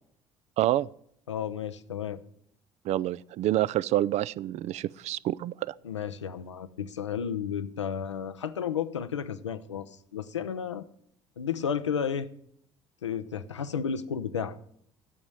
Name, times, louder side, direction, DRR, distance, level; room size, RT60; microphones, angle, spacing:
voice 1, 0.6-0.9 2.8-5.7, right 14 dB, 50° right, 0.4 m, -27 dB
voice 2, 1.3-2.2 5.8-10.8 11.4-12.3 13.0-14.6, left 7 dB, 90° left, 0.5 m, -32 dB
11.0 x 6.1 x 7.8 m
figure-of-eight pair, 55°, 15 cm